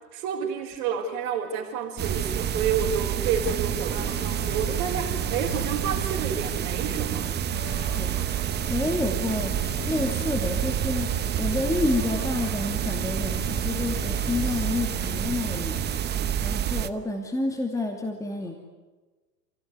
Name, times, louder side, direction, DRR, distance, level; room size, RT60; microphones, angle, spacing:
voice 1, 0.1-7.3, right 7 dB, 55° right, -4 dB, 4.2 m, -29 dB
sound 1, 2.0-16.9, right 9 dB, 20° right, 1.0 m, -28 dB
sound 2, 3.6-15.9, left 2 dB, 40° left, 5.7 m, -41 dB
voice 2, 8.7-11.1 11.4-15.8 16.4-18.5, left 2 dB, 5° left, 3 dB, 2.6 m, -29 dB
28.5 x 16.5 x 9.5 m, 1.3 s
hypercardioid pair, 115°, 49 cm